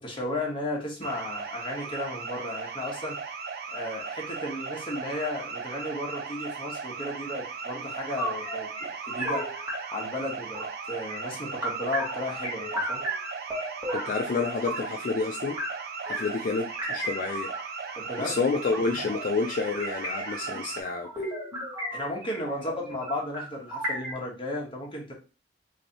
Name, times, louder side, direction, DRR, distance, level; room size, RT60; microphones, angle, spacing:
voice 1, 0.0-3.2 3.7-9.5 9.9-13.0 17.9-18.4 21.9-25.1, left 1 dB, 30° left, -1 dB, 1.1 m, -34 dB
sound 1, 1.0-20.8, right 5 dB, 55° right, 0.6 m, -37 dB
sound 2, 8.2-10.1 10.5-11.2 11.6-15.0 15.4-24.1, right 1 dB, 15° right, 1.3 m, -35 dB
voice 2, 13.9-15.6 16.1-17.5 18.2-21.3 21.5-21.7, left 4 dB, 50° left, 3 dB, 0.4 m, -29 dB
3.2 x 2.6 x 4.1 m, 0.32 s
head